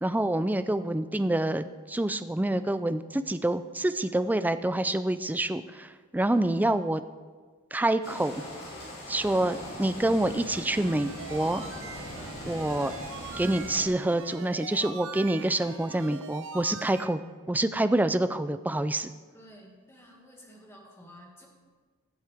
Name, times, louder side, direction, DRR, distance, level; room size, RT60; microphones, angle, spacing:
voice 1, 0.0-7.0 7.7-8.4 9.1-11.6 12.4-12.9 13.4-17.2 17.5-19.1, right 1 dB, 10° right, 11 dB, 0.4 m, -27 dB
sound 1, 8.0-13.9, left 1 dB, 50° left, 3.2 m, -41 dB
sound 2, 10.2-17.1, right 5 dB, 65° right, 0.8 m, -42 dB
voice 2, 19.3-21.5, equal, 10° left, -1 dB, 2.1 m, -52 dB
20.5 x 7.6 x 3.5 m, 1.5 s
head